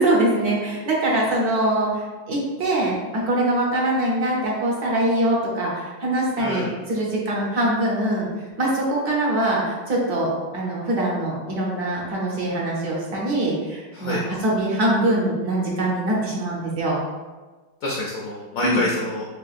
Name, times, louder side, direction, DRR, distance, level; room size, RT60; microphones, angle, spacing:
voice 1, 0.0-8.2 8.6-14.2 14.4-17.0 18.6-18.8, right 1 dB, 60° right, -3 dB, 1.3 m, -23 dB
voice 2, 6.4-6.7 13.9-14.2 17.8-19.3, left 1 dB, 70° left, -3 dB, 0.8 m, -26 dB
4.5 x 3.3 x 2.4 m, 1.3 s
omnidirectional pair, 2.0 m